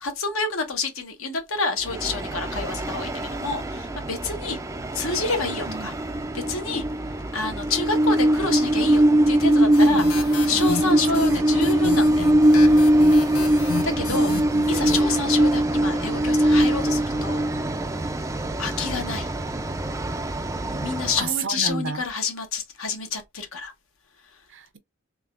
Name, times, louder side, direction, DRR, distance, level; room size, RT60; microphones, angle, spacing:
voice 1, 0.0-4.6 4.9-5.9 6.3-6.8 7.3-10.0 10.4-12.3 12.6-13.0 13.8-14.3 14.7-17.4 18.6-19.3 20.7-23.7, left 4 dB, 65° left, 1.1 m, -28 dB
Train, 1.8-21.3, right 1 dB, 15° right, 0.4 m, -22 dB
sound 1, 9.7-15.0, left 5 dB, 90° left, 0.9 m, -34 dB
voice 2, 10.5-11.4 14.0-14.7 21.2-22.0 24.5-24.8, right 5 dB, 60° right, 0.6 m, -32 dB
3.5 x 3.3 x 2.4 m
head